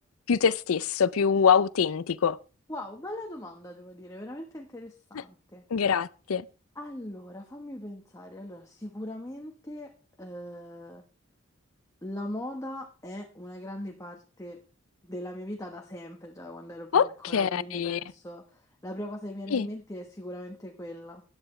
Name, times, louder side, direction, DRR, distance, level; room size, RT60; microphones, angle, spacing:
voice 1, 0.3-2.4 5.7-6.4 16.9-17.1 17.3-18.0 19.5-19.7, left 6 dB, 85° left, 0.5 m, -24 dB
voice 2, 2.7-5.6 6.7-9.9 10.2-11.0 12.0-14.6 15.0-21.2, left 1 dB, 15° left, 1.1 m, -40 dB
15.0 x 10.0 x 3.2 m
head